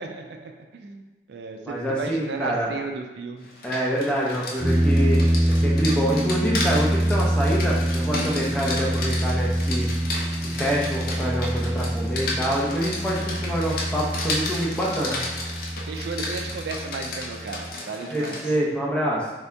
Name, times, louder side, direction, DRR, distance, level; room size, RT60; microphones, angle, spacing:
voice 1, 0.0-3.5 15.8-18.4, right 3 dB, 75° right, 4 dB, 0.4 m, -34 dB
voice 2, 1.7-2.7 3.6-9.9 10.3-15.2 18.1-19.3, equal, 5° left, -4 dB, 0.5 m, -26 dB
Rain, 3.4-18.6, left 2 dB, 55° left, 0.5 m, -33 dB
sound 1, 4.6-17.7, right 1 dB, 45° right, 0.9 m, -25 dB
3.4 x 2.7 x 3.3 m, 1.1 s
head